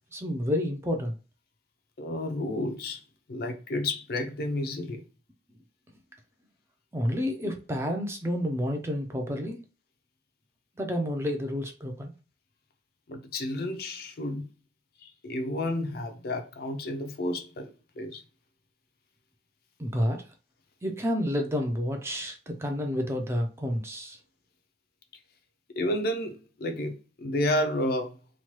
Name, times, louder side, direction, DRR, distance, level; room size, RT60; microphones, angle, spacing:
voice 1, 0.1-1.2 6.9-9.6 10.8-12.1 19.8-20.2 20.8-24.2, equal, 15° right, 0.4 m, -29 dB
voice 2, 2.0-3.0 3.3-5.0 13.1-14.5 15.0-18.2 25.8-28.1, left 1 dB, 50° left, 0.4 m, -31 dB
3.0 x 2.2 x 2.9 m
head